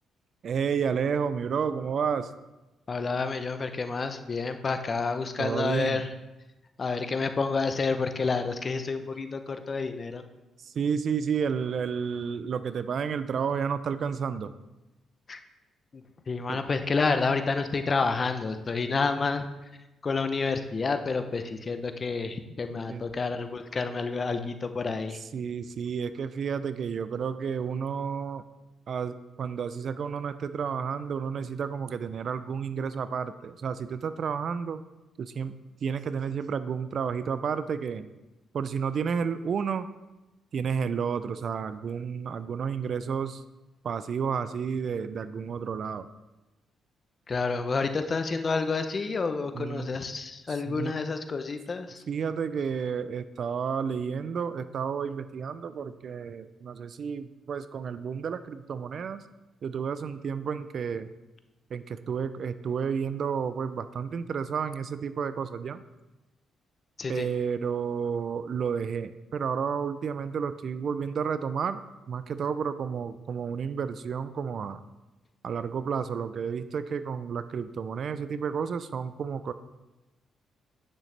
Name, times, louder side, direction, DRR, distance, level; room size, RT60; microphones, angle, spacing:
voice 1, 0.4-2.3 5.4-6.0 10.6-14.5 16.5-16.6 22.9-23.1 25.3-28.4 28.9-34.8 35.2-35.5 35.8-38.1 38.5-39.9 40.5-43.4 43.8-46.1 49.5-49.9 50.5-50.9 52.1-59.2 59.6-61.1 61.7-65.8 67.1-71.8 72.1-74.8 75.4-79.5, right 6 dB, 55° right, 13 dB, 0.4 m, -31 dB
voice 2, 2.9-6.1 6.8-10.2 15.3-15.4 15.9-19.5 20.0-25.2 47.3-52.0 67.0-67.3, left 4 dB, 35° left, 8 dB, 0.7 m, -29 dB
9.2 x 6.4 x 3.3 m, 1.0 s
cardioid pair, 90°, 0 cm